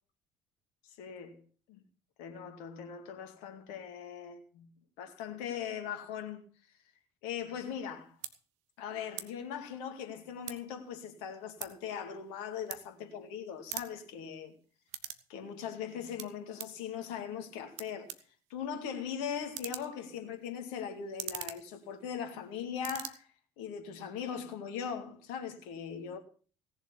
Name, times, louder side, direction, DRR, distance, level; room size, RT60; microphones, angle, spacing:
voice 1, 0.8-1.4 1.7-1.8 2.2-4.7 5.0-6.4 7.2-8.2 8.8-14.5 15.3-18.1 18.5-23.3 23.6-26.2, left 8 dB, 70° left, 2.3 m, -40 dB
sound 1, 7.7-7.8 8.2-8.3 9.1-9.3 9.6-10.8 11.1-13.3 13.6-15.3 15.6-16.8 17.4-17.5 17.7-22.4 22.7-23.1, right 12 dB, 65° right, 1.2 m, -43 dB
17.5 x 7.2 x 7.0 m
figure-of-eight pair, 55°, 12 cm